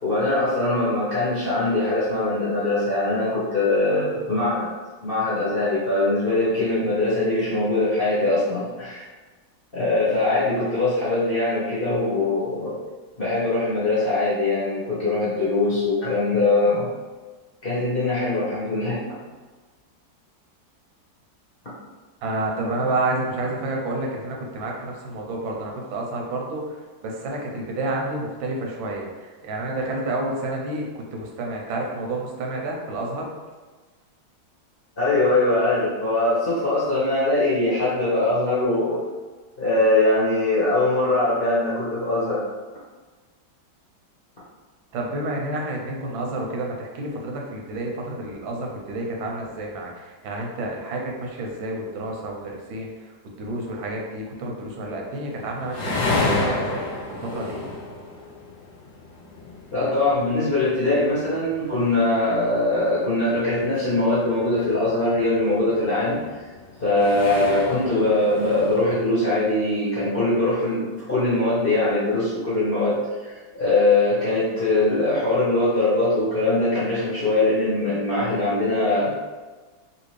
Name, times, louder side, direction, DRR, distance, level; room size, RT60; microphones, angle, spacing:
voice 1, 0.0-4.7 5.0-9.0 9.7-12.7 13.2-16.9 17.6-19.0 35.0-39.0 39.6-42.4 59.7-66.4 66.8-79.2, left 2 dB, 40° left, -10 dB, 0.8 m, -22 dB
voice 2, 22.2-33.3 44.9-57.6, right 2 dB, 85° right, 0 dB, 1.5 m, -30 dB
sound 1, 55.3-69.1, left 2 dB, 75° left, 0.6 m, -32 dB
3.4 x 2.7 x 3.1 m, 1.3 s
omnidirectional pair, 2.1 m